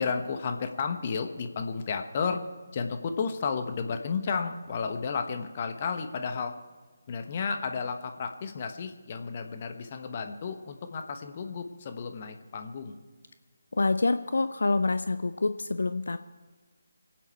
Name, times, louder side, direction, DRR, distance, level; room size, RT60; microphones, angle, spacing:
voice 1, 0.0-2.4 2.7-6.6 7.1-13.0, left 5 dB, 35° left, 6 dB, 1.1 m, -32 dB
voice 2, 13.8-16.2, left 3 dB, 65° left, 10 dB, 0.6 m, -26 dB
26.5 x 9.2 x 4.6 m, 1.4 s
figure-of-eight pair, 150°, 0 cm